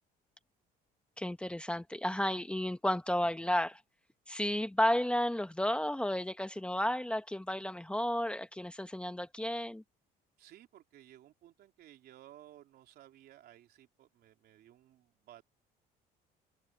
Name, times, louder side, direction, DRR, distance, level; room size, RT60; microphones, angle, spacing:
voice 1, 1.2-3.8 4.3-9.8, left 1 dB, 5° left, 1.1 m, -32 dB
voice 2, 10.4-15.4, right 13 dB, 70° right, 3.5 m, -57 dB
open air
cardioid pair, 110°, 17 cm